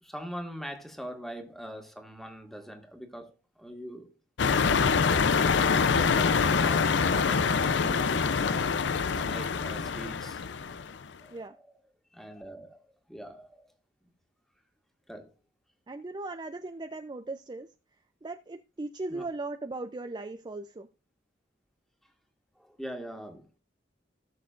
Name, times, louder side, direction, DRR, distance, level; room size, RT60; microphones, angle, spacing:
voice 1, 0.0-4.1 5.7-8.4 9.1-10.8 11.2-11.8 12.1-13.7 15.1-15.3 19.1-19.3 22.5-23.6, equal, ahead, 1.7 m, -43 dB
sound 1, 4.4-11.0, left 5 dB, 70° left, 0.5 m, -25 dB
voice 2, 15.9-17.7 18.2-20.9, right 2 dB, 25° right, 0.5 m, -38 dB
18.0 x 6.5 x 2.5 m
head